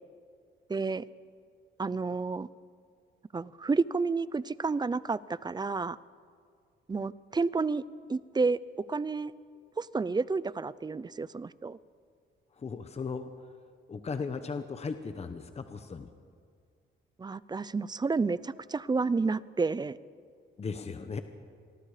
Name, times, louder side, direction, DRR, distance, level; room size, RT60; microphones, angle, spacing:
voice 1, 0.7-1.0 1.8-2.5 3.3-6.0 6.9-7.8 8.1-8.6 8.9-9.3 9.8-11.8 17.2-20.0, right 4 dB, 20° right, 19 dB, 0.5 m, -30 dB
voice 2, 12.5-13.3 13.9-16.1 20.6-21.2, left 5 dB, 30° left, 9 dB, 1.1 m, -37 dB
26.5 x 19.5 x 5.0 m, 2.1 s
cardioid pair, 90°, 20 cm